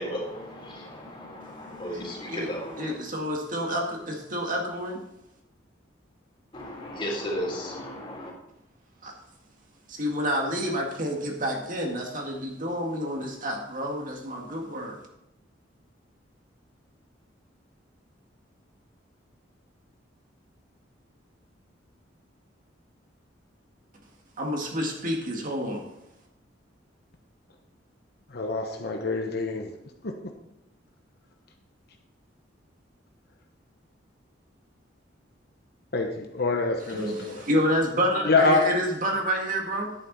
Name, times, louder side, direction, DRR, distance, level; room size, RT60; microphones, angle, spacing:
voice 1, 0.0-2.9 6.5-8.3, equal, 30° left, -2 dB, 3.5 m, -34 dB
voice 2, 1.7-2.5 2.8-5.0 9.0-9.1 9.9-15.0 24.4-25.9 36.9-39.9, equal, 45° right, 1 dB, 2.0 m, -29 dB
voice 3, 28.3-29.7 30.0-30.1 35.9-37.4 38.2-38.7, left 3 dB, 55° left, 3 dB, 1.0 m, -25 dB
10.5 x 9.3 x 4.1 m, 0.84 s
head